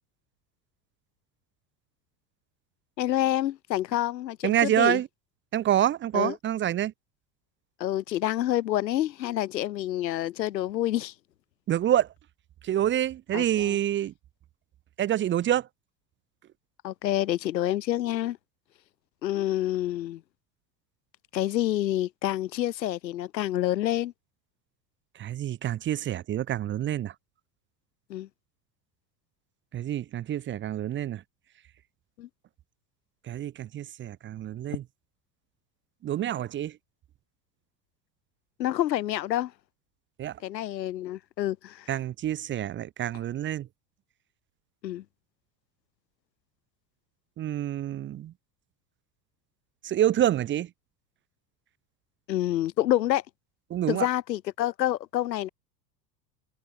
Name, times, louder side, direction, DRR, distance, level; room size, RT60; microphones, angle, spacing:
voice 1, 3.0-5.0 6.1-6.4 7.8-11.1 13.3-13.8 16.8-18.4 19.2-20.2 21.3-24.1 28.1-28.3 32.2-32.3 38.6-39.5 40.4-41.9 44.8-45.0 52.3-53.2 53.9-55.5, left 13 dB, 80° left, 0.7 m, -28 dB
voice 2, 4.4-5.1 5.5-6.9 11.7-12.1 12.6-14.1 15.0-15.7 25.2-27.1 29.7-31.2 33.3-34.8 36.0-36.7 40.2-40.4 41.9-43.7 47.4-48.3 49.8-50.7 53.7-54.1, right 11 dB, 25° right, 0.6 m, -27 dB
figure-of-eight pair, 75°, 50 cm